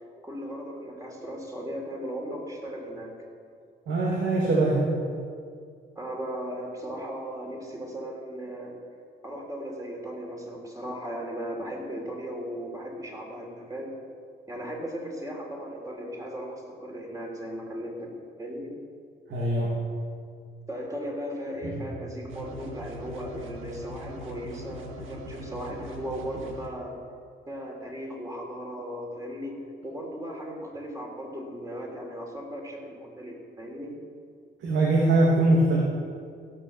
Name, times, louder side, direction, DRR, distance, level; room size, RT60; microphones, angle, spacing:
voice 1, 0.2-3.2 6.0-8.8 9.2-14.0 14.5-18.8 20.7-26.9 27.5-29.6 29.8-34.0, equal, 15° right, 0 dB, 3.4 m, -37 dB
voice 2, 3.9-4.9 19.3-19.7 21.6-21.8 34.6-35.8, right 2 dB, 70° right, -3 dB, 2.5 m, -22 dB
sound 1, 22.3-26.7, equal, 90° right, 1.7 m, -41 dB
16.5 x 7.1 x 7.3 m, 2.2 s
cardioid pair, 90°, 20 cm